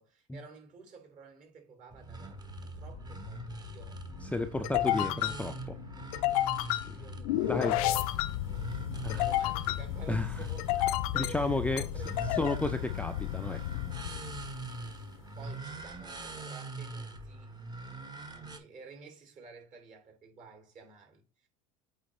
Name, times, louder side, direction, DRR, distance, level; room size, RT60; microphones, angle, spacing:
voice 1, 0.0-4.0 4.6-4.7 6.0-6.2 6.4-8.0 8.5-12.4 14.6-15.0 15.3-21.5, right 5 dB, 45° right, 3.1 m, -53 dB
sound 1, 1.9-18.6, right 3 dB, 20° right, 1.2 m, -43 dB
sound 2, 2.3-15.1, left 14 dB, 75° left, 0.5 m, -33 dB
voice 2, 4.2-5.8 6.8-7.0 7.5-7.7 9.0-9.2 10.1-10.3 11.1-11.8 12.4-13.8, left 2 dB, 5° left, 0.5 m, -32 dB
8.2 x 3.8 x 3.2 m
hypercardioid pair, 95°, 19 cm